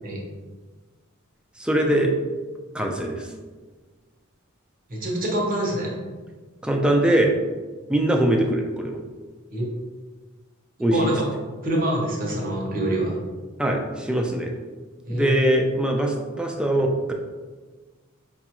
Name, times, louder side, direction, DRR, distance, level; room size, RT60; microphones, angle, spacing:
voice 1, 1.6-2.1 2.7-3.3 6.6-7.3 7.9-9.0 10.8-11.0 13.6-14.5 15.1-17.1, right 1 dB, 5° right, 2 dB, 0.4 m, -22 dB
voice 2, 4.9-5.9 9.5-9.7 10.9-11.3 11.6-13.2 15.0-15.4, right 1 dB, 45° right, -2 dB, 0.9 m, -25 dB
4.8 x 2.4 x 2.9 m, 1.3 s
head